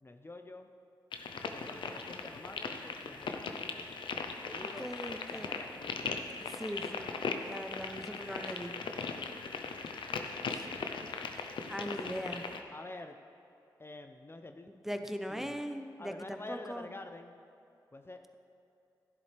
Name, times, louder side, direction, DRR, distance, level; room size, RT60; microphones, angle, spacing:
voice 1, 0.0-0.7 1.5-3.8 4.4-4.9 5.3-6.1 6.5-6.6 10.3-10.5 12.7-13.2 13.8-14.7 15.3-15.6 16.0-17.4 17.9-18.3, left 2 dB, 30° left, 6 dB, 0.6 m, -48 dB
sound 1, 1.1-12.6, left 5 dB, 80° left, 0.7 m, -39 dB
voice 2, 4.8-5.5 6.4-7.1 7.4-8.7 10.5-10.6 11.7-12.4 14.8-16.8, equal, 5° right, 7 dB, 0.7 m, -40 dB
12.0 x 10.5 x 3.4 m, 2.8 s
cardioid pair, 45°, 8 cm